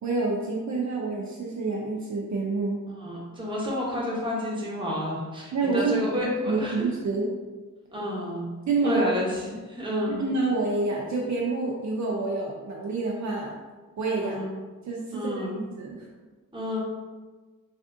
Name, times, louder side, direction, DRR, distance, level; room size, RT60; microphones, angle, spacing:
voice 1, 0.0-2.8 5.5-6.0 6.5-7.3 8.7-9.0 10.2-13.5 14.0-14.4 14.9-16.1, right 3 dB, 55° right, -2 dB, 0.5 m, -28 dB
voice 2, 2.9-6.8 7.9-8.4 8.8-10.2 14.2-14.5 15.1-15.6 16.5-16.8, left 1 dB, 15° right, -5 dB, 0.9 m, -30 dB
3.4 x 2.5 x 2.5 m, 1.3 s
cardioid pair, 90°, 33 cm